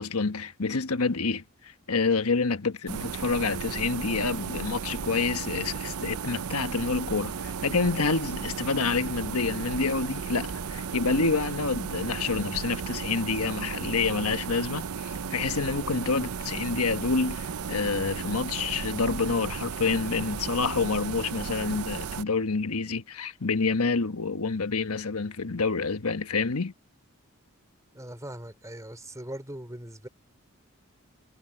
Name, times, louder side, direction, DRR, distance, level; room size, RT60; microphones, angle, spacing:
voice 1, 0.0-26.7, left 4 dB, 90° left, 1.3 m, -28 dB
sound 1, 2.9-22.2, right 6 dB, 90° right, 0.6 m, -35 dB
voice 2, 27.9-30.1, right 1 dB, 15° right, 3.2 m, -40 dB
head